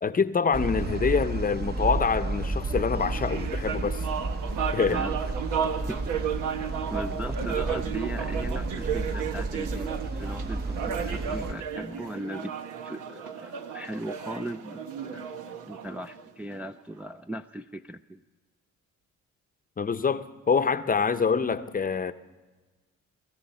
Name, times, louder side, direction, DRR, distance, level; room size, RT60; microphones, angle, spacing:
voice 1, 0.0-4.0 4.7-5.0 19.8-22.1, left 5 dB, 30° left, 0.7 m, -26 dB
sound 1, 0.5-11.5, right 2 dB, 30° right, 1.0 m, -32 dB
sound 2, 2.9-16.6, right 8 dB, 90° right, 1.2 m, -34 dB
voice 2, 4.9-5.2 5.9-6.0 6.9-12.5 12.8-15.4 15.7-18.2, equal, 5° right, 0.4 m, -38 dB
23.5 x 14.0 x 4.3 m
cardioid pair, 90°, 30 cm